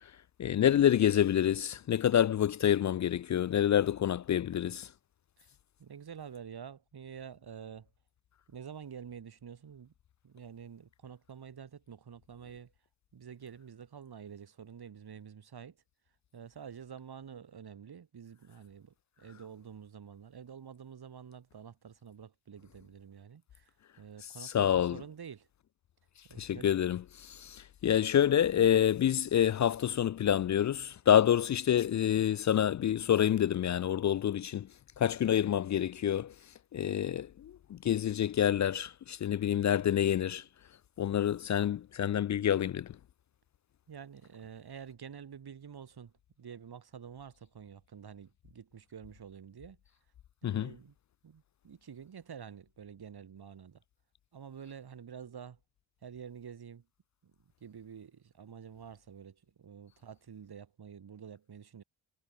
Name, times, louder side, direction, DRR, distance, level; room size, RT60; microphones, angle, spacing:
voice 1, 0.4-4.9 24.4-25.0 26.4-34.7 35.0-36.3 36.7-40.4 41.0-42.9 50.4-50.7, left 10 dB, 40° left, 0.5 m, -27 dB
voice 2, 5.8-7.9 8.5-9.9 10.2-12.7 13.1-15.8 16.3-25.5 26.3-26.7 43.9-49.8 50.4-50.9 51.2-53.8 54.3-55.6 56.0-56.9 57.2-57.3 57.6-61.8, right 7 dB, 50° right, 4.3 m, -48 dB
supercardioid pair, 55°, 47 cm